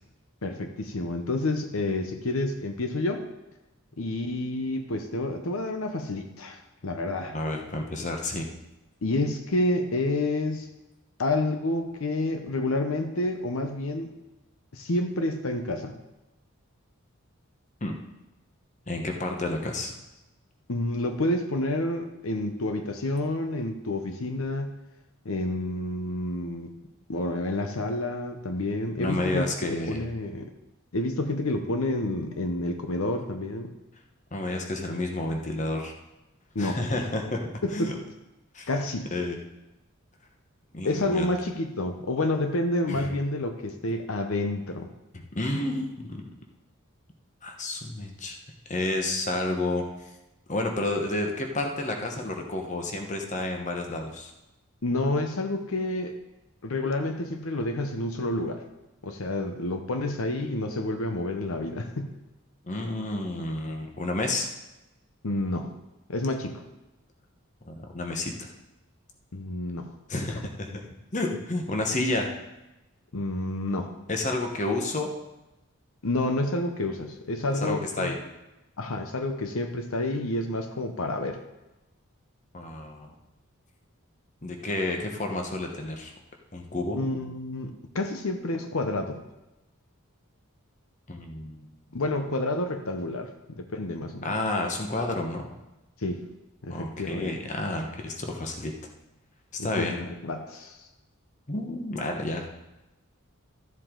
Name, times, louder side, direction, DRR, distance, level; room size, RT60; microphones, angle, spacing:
voice 1, 0.4-3.3 4.0-7.4 9.0-10.7 11.2-14.1 14.7-15.9 20.7-24.7 25.2-26.7 27.1-29.4 29.9-30.5 30.9-33.7 36.5-36.8 37.6-37.9 38.7-39.1 40.8-44.9 54.8-56.1 56.6-58.6 59.0-62.1 65.2-65.7 66.1-66.6 69.3-69.9 73.1-73.9 76.0-78.1 78.8-81.4 86.9-89.2 91.9-94.3 96.0-96.2 96.6-97.4 99.6-100.8, left 2 dB, 70° left, 6 dB, 0.8 m, -29 dB
voice 2, 7.3-8.5 17.8-18.0 18.9-19.9 29.0-30.0 34.3-35.9 36.6-37.9 38.5-38.7 39.1-39.4 40.7-41.3 42.9-43.1 45.1-46.2 47.4-48.4 48.7-49.8 50.5-54.3 62.6-64.5 67.6-68.5 70.1-70.9 71.1-72.3 74.1-75.1 77.6-78.1 82.5-83.1 84.4-86.1 86.5-87.0 91.1-91.7 94.2-95.5 96.7-98.7 99.5-100.0 101.5-102.5, left 2 dB, 35° left, 3 dB, 1.0 m, -30 dB
13.5 x 7.5 x 3.8 m, 0.99 s
head